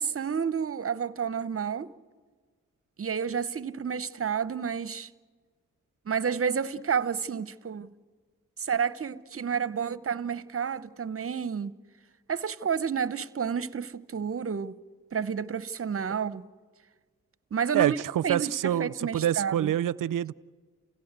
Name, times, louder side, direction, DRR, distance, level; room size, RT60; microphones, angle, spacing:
voice 1, 0.0-1.9 3.0-5.1 6.1-7.9 8.6-11.7 12.3-14.7 15.1-16.4 17.5-18.0 18.2-19.7, right 7 dB, 40° right, 0.9 m, -30 dB
voice 2, 17.7-20.3, right 11 dB, 70° right, 0.6 m, -26 dB
29.5 x 16.5 x 8.2 m
supercardioid pair, 50°, 33 cm